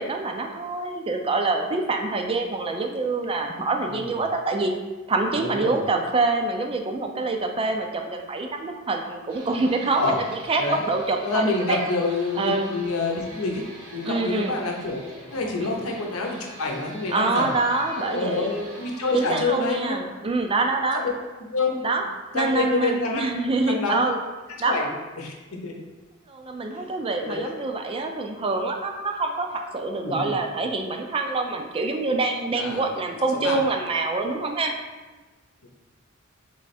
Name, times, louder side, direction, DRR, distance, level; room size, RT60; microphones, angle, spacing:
voice 1, 0.0-4.7 5.1-11.9 12.4-12.7 14.0-14.6 15.6-15.8 17.1-18.5 19.1-21.0 21.8-22.1 22.3-24.2 24.6-24.8 26.3-34.7, right 3 dB, 25° right, 4 dB, 0.4 m, -26 dB
voice 2, 5.4-5.8 10.0-10.1 10.6-10.8 11.2-13.6 13.9-17.5 18.0-20.0 21.0-21.1 21.5-21.8 22.3-23.4 23.7-24.0 24.6-25.3 25.6-25.8 26.7-26.9 27.2-27.5 30.0-30.3 32.6-32.8 33.3-33.6 35.6-35.7, left 3 dB, 75° left, 0 dB, 0.7 m, -27 dB
sound 1, 9.3-19.5, right 1 dB, 65° right, 1.1 m, -44 dB
3.5 x 3.2 x 4.2 m, 1.2 s
head